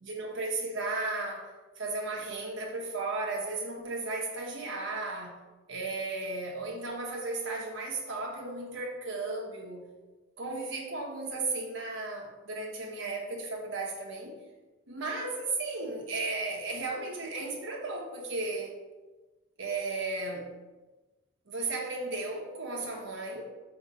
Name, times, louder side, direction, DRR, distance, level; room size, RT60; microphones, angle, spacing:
voice 1, 0.0-5.4 5.7-9.8 10.4-14.3 14.9-18.7 19.6-20.5 21.5-23.4, right 3 dB, 70° right, -1 dB, 1.2 m, -35 dB
5.0 x 3.4 x 5.5 m, 1.2 s
head